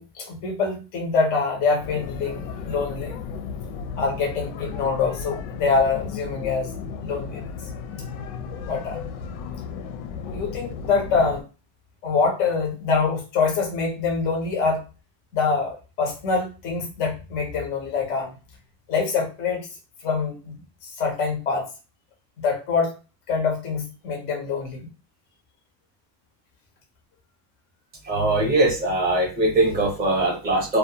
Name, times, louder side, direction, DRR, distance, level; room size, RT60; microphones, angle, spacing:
voice 1, 0.0-3.1 4.0-6.7 7.0-7.5 8.7-9.0 10.3-11.4 12.0-14.8 15.3-18.3 18.9-19.7 20.0-21.7 22.4-22.9 23.3-24.9, left 4 dB, 25° left, 0 dB, 0.4 m, -25 dB
sound 1, 1.8-11.4, left 6 dB, 90° left, 0.6 m, -34 dB
voice 2, 28.0-30.8, right 2 dB, 20° right, -2 dB, 0.6 m, -21 dB
2.3 x 2.2 x 2.7 m, 0.31 s
cardioid pair, 170°, 49 cm